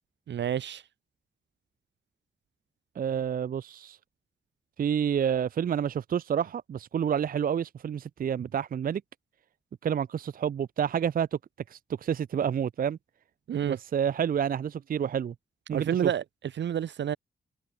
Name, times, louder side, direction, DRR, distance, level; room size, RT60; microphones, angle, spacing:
voice 1, 0.3-0.8 13.5-13.8 15.7-16.2 16.6-17.2, right 9 dB, 75° right, 0.8 m, -28 dB
voice 2, 3.0-4.0 4.8-9.0 9.8-11.3 11.7-13.0 13.7-15.3 15.7-16.1, right 8 dB, 50° right, 0.4 m, -29 dB
cardioid pair, 65°, 19 cm